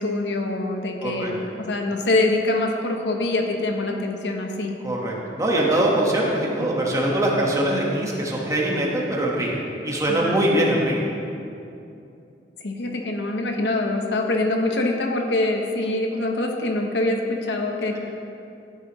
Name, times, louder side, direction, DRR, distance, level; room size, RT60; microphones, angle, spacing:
voice 1, 0.0-4.8 10.1-10.5 12.6-18.0, left 2 dB, 75° left, 3 dB, 1.0 m, -24 dB
voice 2, 1.0-1.3 4.8-11.0, right 1 dB, 20° right, -3 dB, 1.4 m, -22 dB
12.0 x 9.6 x 3.1 m, 2.6 s
head